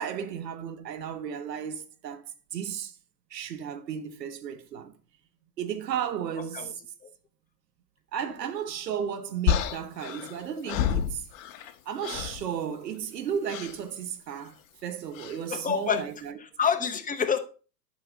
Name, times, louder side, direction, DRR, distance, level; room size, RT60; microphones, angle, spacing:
voice 1, 0.0-3.0 3.3-4.9 5.6-6.8 8.1-11.2 11.6-16.4, right 8 dB, 75° right, 1.4 m, -34 dB
voice 2, 6.4-6.7 7.0-7.1 15.5-16.1 16.4-17.4, left 7 dB, 15° left, 1.1 m, -28 dB
sound 1, 9.5-11.7 12.0-12.4 13.5-13.8 15.1-15.4, left 9 dB, 55° left, 1.1 m, -29 dB
11.0 x 5.6 x 3.7 m
hypercardioid pair, 95°, 50 cm